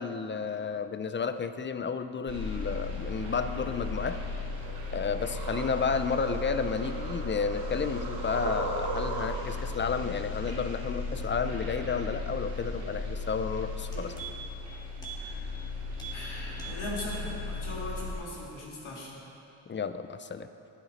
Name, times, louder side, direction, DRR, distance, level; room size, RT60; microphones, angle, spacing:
voice 1, 0.0-4.2 4.9-14.2 19.7-20.5, left 5 dB, 25° left, 11 dB, 0.4 m, -32 dB
sound 1, 2.3-18.2, left 3 dB, 85° right, 2.4 m, -36 dB
sound 2, 4.6-9.7, right 3 dB, 50° right, 1.1 m, -37 dB
sound 3, 13.7-14.6 15.0-15.2 15.5-15.7 15.9-16.2 16.5-17.3 17.6-17.7, right 7 dB, 10° left, 1.9 m, -43 dB
voice 2, 16.1-19.2, left 1 dB, 80° left, -3 dB, 2.0 m, -39 dB
9.8 x 9.0 x 4.1 m, 2.8 s
cardioid pair, 75°, 49 cm